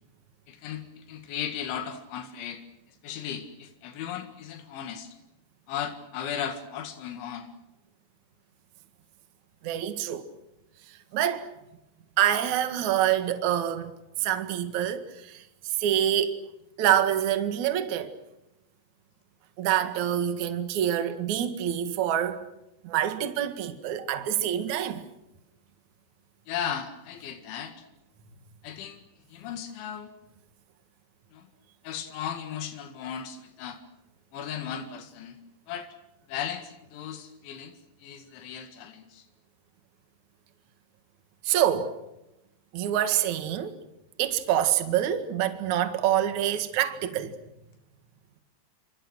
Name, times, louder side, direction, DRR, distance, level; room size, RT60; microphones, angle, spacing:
voice 1, 0.5-2.6 2.9-5.2 5.7-7.5 26.5-27.9 28.6-29.0 29.3-30.1 31.3-31.5 31.8-33.8 34.3-35.4 35.7-35.9 36.3-39.3, left 8 dB, 90° left, 4.3 m, -36 dB
voice 2, 9.6-10.3 10.9-11.5 12.2-13.9 14.2-15.4 15.8-16.4 16.8-18.1 19.6-22.5 22.8-25.0 41.4-42.0 42.7-43.8 44.2-47.3, right 10 dB, 50° right, 2.6 m, -26 dB
27.5 x 27.5 x 6.3 m
omnidirectional pair, 5.2 m